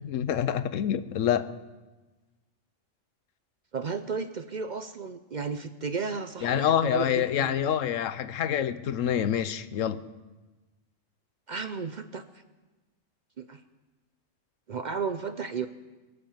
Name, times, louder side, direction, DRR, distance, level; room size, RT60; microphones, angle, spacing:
voice 1, 0.0-1.5 6.4-10.0, left 9 dB, 85° left, 14 dB, 1.1 m, -27 dB
voice 2, 3.7-7.6 11.5-12.2 13.4-13.6 14.7-15.7, right 5 dB, 50° right, 11 dB, 0.6 m, -33 dB
23.0 x 8.6 x 7.2 m, 1.2 s
omnidirectional pair, 1.3 m